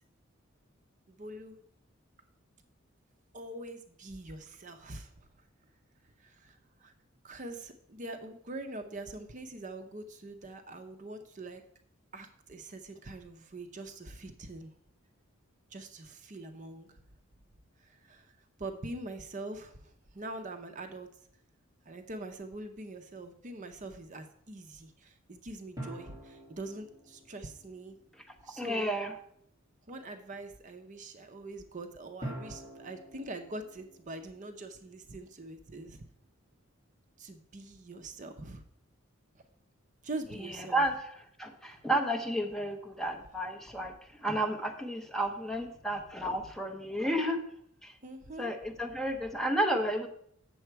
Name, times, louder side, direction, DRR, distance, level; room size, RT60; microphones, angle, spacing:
voice 1, 1.1-1.6 3.3-5.3 6.2-6.9 7.2-11.6 12.1-14.7 15.7-17.0 17.8-21.1 21.9-28.0 28.4-28.9 29.9-36.0 37.2-38.6 40.0-40.9 48.0-48.5, right 2 dB, 40° right, 7 dB, 0.6 m, -44 dB
sound 1, 25.8-28.6 32.2-35.6, right 1 dB, 15° right, 1.9 m, -46 dB
voice 2, 28.6-29.1 40.7-41.0 41.4-43.9 44.2-47.4 47.8-47.9 48.4-50.1, right 1 dB, ahead, 3 dB, 0.8 m, -31 dB
7.8 x 6.8 x 4.5 m, 0.67 s
head